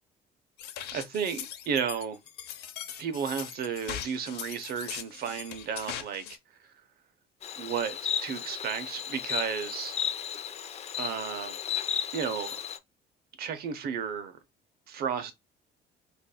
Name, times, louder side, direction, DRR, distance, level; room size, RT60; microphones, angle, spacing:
sound 1, 0.6-6.4, left 10 dB, 75° left, 0.7 m, -40 dB
voice 1, 0.9-2.2 3.0-6.2 6.6-6.7 7.6-9.9 11.0-11.6 12.1-12.6 13.4-14.4 14.9-15.3, right 7 dB, 65° right, 0.9 m, -33 dB
Insect, 7.4-12.8, left 8 dB, 40° left, 0.5 m, -34 dB
5.2 x 2.6 x 2.2 m
cardioid pair, 110°, 17 cm